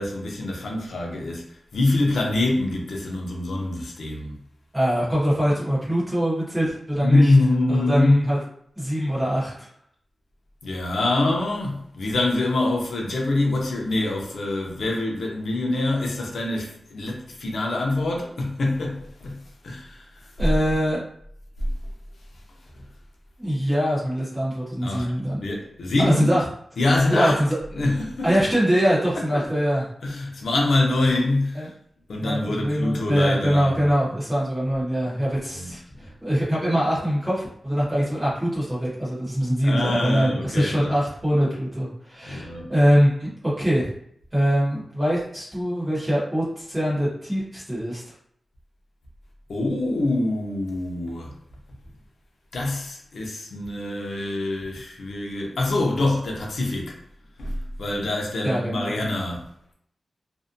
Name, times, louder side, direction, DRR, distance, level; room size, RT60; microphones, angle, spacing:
voice 1, 0.0-4.4 7.0-8.2 10.6-19.4 19.6-20.3 24.8-25.1 25.4-26.3 26.8-27.4 27.7-28.3 29.3-29.5 30.0-31.7 32.1-33.9 35.5-35.7 39.6-40.9 42.2-42.7 49.5-51.3 52.5-57.0 57.4-59.7, left 2 dB, 80° left, 0.6 m, -25 dB
voice 2, 4.7-7.3 7.7-8.4 8.8-9.7 20.4-21.0 23.4-25.4 26.0-26.4 27.1-27.5 28.2-29.8 31.5-31.7 32.2-43.3 43.6-43.9 44.3-48.1 58.4-59.0, equal, 10° right, 1.0 m, -23 dB
2.6 x 2.1 x 2.6 m
wide cardioid pair, 180°, 0 cm